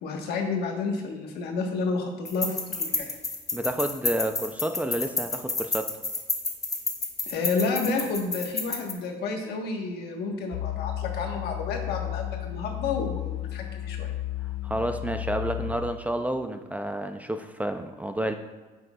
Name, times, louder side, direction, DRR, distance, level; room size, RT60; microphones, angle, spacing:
voice 1, 0.0-3.1 7.3-14.1, left 4 dB, 75° left, 2 dB, 1.2 m, -30 dB
sound 1, 2.3-8.9, left 3 dB, 20° left, 0.8 m, -30 dB
voice 2, 3.5-5.9 14.6-18.3, right 1 dB, 10° right, 7 dB, 0.4 m, -30 dB
sound 2, 10.5-15.8, left 13 dB, 45° left, 0.8 m, -33 dB
9.0 x 6.5 x 2.3 m, 1.3 s
cardioid pair, 110°, 17 cm